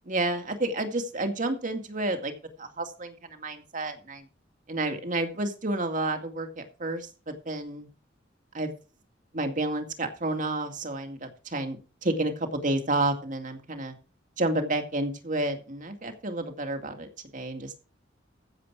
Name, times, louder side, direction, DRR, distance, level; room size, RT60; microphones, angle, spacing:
voice 1, 0.1-2.3 2.6-4.2 4.7-7.9 8.5-8.7 9.3-13.9 14.4-17.8, right 2 dB, 45° right, 6 dB, 2.2 m, -30 dB
15.0 x 7.6 x 4.7 m, 0.33 s
head